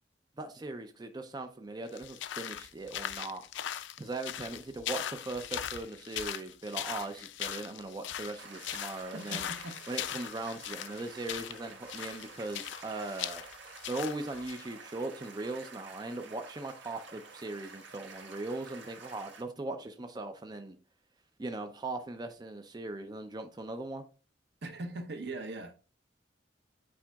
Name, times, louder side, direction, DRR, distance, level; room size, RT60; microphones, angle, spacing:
voice 1, 0.4-3.4 4.0-9.5 9.9-13.4 13.9-20.8 21.4-24.0, right 2 dB, 25° right, 0.5 m, -39 dB
sound 1, 1.9-14.7, left 11 dB, 75° left, 0.4 m, -40 dB
sound 2, 8.4-19.4, right 4 dB, 80° right, 1.5 m, -50 dB
voice 2, 9.1-9.8 24.6-25.7, right 2 dB, 65° right, 0.9 m, -40 dB
8.6 x 4.8 x 2.3 m
head